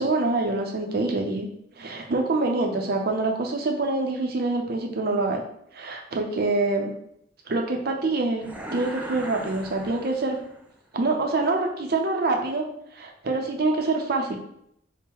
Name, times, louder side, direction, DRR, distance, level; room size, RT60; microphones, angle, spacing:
voice 1, 0.0-1.5 1.8-5.4 5.7-6.9 7.5-8.4 8.7-10.4 10.9-12.6 13.0-14.4, right 3 dB, 55° right, 3 dB, 0.6 m, -25 dB
sound 1, 8.4-10.7, right 1 dB, 10° right, 0.4 m, -38 dB
3.6 x 2.1 x 4.4 m, 0.73 s
head